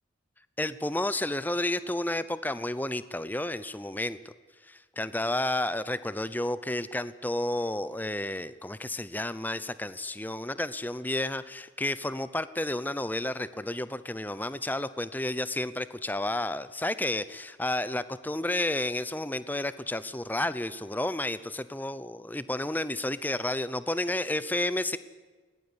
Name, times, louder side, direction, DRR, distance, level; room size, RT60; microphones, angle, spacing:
voice 1, 0.6-4.3 4.7-25.0, left 1 dB, 10° left, 15 dB, 0.7 m, -31 dB
20.0 x 17.0 x 9.9 m, 1.4 s
head